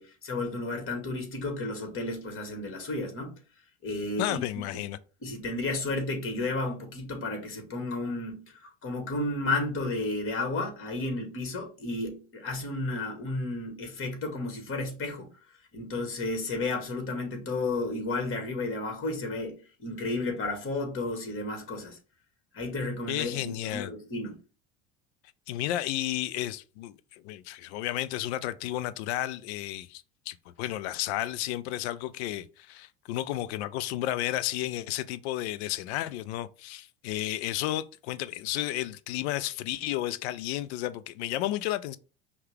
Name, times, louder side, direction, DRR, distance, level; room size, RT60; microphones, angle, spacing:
voice 1, 0.0-3.3 3.8-4.4 5.2-15.3 15.7-22.0 22.5-24.4, left 2 dB, 35° left, 1.6 m, -32 dB
voice 2, 4.2-5.0 23.1-23.9 25.5-42.0, left 14 dB, 60° left, 0.5 m, -32 dB
5.4 x 2.3 x 3.4 m
hypercardioid pair, 75°, 36 cm